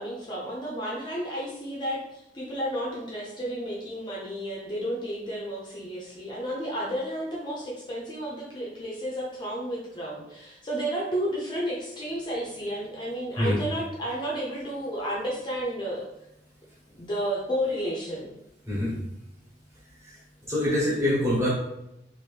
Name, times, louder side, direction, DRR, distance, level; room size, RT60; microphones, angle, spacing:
voice 1, 0.0-16.1 16.9-18.3, equal, 25° left, -4 dB, 0.6 m, -32 dB
voice 2, 18.7-19.0 20.5-21.5, left 1 dB, 15° right, -6 dB, 1.2 m, -24 dB
3.0 x 2.6 x 3.3 m, 0.82 s
head